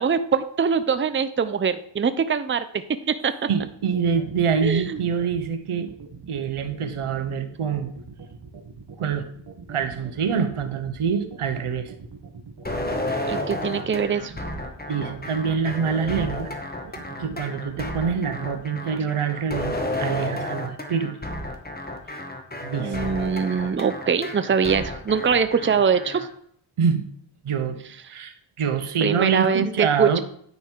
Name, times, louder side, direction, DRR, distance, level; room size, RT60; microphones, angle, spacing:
voice 1, 0.0-2.6 3.1-3.3 4.6-5.0 13.3-14.3 22.8-26.3 29.0-30.2, right 6 dB, 25° right, 11 dB, 0.6 m, -23 dB
voice 2, 3.5-5.9 6.3-7.9 9.0-9.3 9.7-11.9 14.9-16.6 17.2-21.2 22.6-23.0 26.8-27.0 27.4-27.8 28.1-30.2, right 6 dB, 90° right, 8 dB, 1.1 m, -25 dB
sound 1, 3.6-18.3, right 5 dB, 50° right, 1.4 m, -43 dB
sound 2, 12.6-26.3, left 1 dB, 20° left, 1.5 m, -32 dB
9.5 x 5.3 x 4.6 m, 0.63 s
cardioid pair, 60°, 49 cm